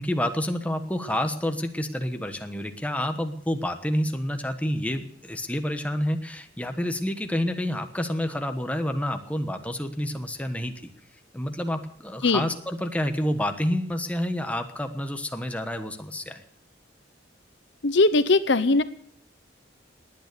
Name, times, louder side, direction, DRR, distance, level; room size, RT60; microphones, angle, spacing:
voice 1, 0.0-10.9 11.3-16.4, left 1 dB, 5° left, 6 dB, 1.2 m, -29 dB
voice 2, 17.8-18.8, left 3 dB, 70° left, 13 dB, 0.8 m, -20 dB
19.0 x 9.5 x 6.8 m, 0.66 s
head